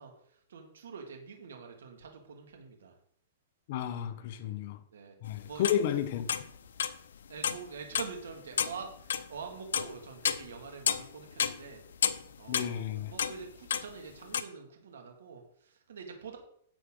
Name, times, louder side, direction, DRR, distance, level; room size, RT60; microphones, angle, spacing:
voice 1, 0.0-2.9 4.4-4.6 4.9-5.1 5.5-5.8 7.3-11.8 12.4-16.4, right 6 dB, 85° right, 2.3 m, -45 dB
voice 2, 3.7-4.8 5.2-6.3 12.5-13.1, left 10 dB, 50° left, 1.1 m, -32 dB
sound 1, 5.3-7.0 7.4-7.6 7.9-11.1 11.3-14.4, left 8 dB, 85° left, 0.8 m, -31 dB
11.0 x 8.2 x 3.9 m
hypercardioid pair, 155°, 0 cm